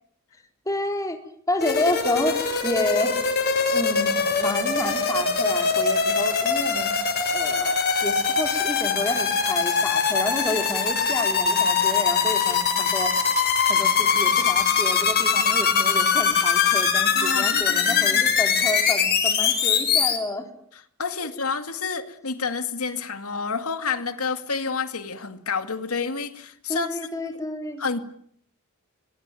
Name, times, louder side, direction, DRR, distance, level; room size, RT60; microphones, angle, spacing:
voice 1, 0.7-1.2 1.5-2.4 2.6-3.2 3.7-7.0 7.3-13.1 13.7-20.5 26.7-27.8, left 2 dB, 15° left, 4.1 m, -29 dB
sound 1, 1.6-20.2, left 5 dB, 50° left, 6.7 m, -22 dB
voice 2, 17.1-18.2 21.0-26.9 27.8-28.0, left 5 dB, 80° left, 2.4 m, -29 dB
26.0 x 22.0 x 9.2 m
head